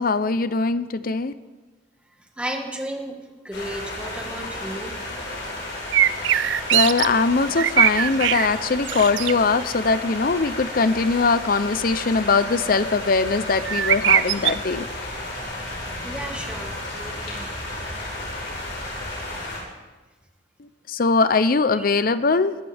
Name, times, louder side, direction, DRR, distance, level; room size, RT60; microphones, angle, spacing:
voice 1, 0.0-1.3 6.3-14.8 20.9-22.6, left 4 dB, 50° left, 13 dB, 0.6 m, -21 dB
voice 2, 2.4-3.2 3.4-4.9 16.0-17.5 21.7-21.8, right 1 dB, 5° right, 2 dB, 1.7 m, -33 dB
sound 1, 3.5-19.6, left 1 dB, 75° left, 4.6 m, -33 dB
sound 2, 5.9-7.1 7.4-8.5 8.9-9.3 13.7-14.5, right 11 dB, 75° right, 0.4 m, -20 dB
21.0 x 13.5 x 3.5 m, 1.2 s
head